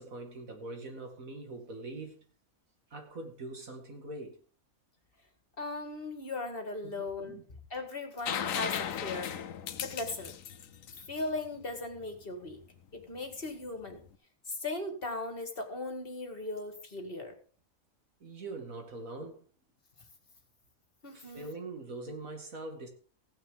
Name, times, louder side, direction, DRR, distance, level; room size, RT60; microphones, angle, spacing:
voice 1, 0.0-2.3 2.9-4.4 6.8-7.4 18.2-19.4 21.1-22.9, right 2 dB, 75° right, 2.6 m, -43 dB
voice 2, 5.6-7.4 7.7-9.3 9.8-10.4 11.1-12.6 12.9-14.0 14.5-17.4 21.0-21.5, left 2 dB, 40° left, 2.1 m, -38 dB
sound 1, 8.3-12.0 13.8-13.9, left 9 dB, 75° left, 1.2 m, -36 dB
16.0 x 9.6 x 3.8 m
omnidirectional pair, 1.4 m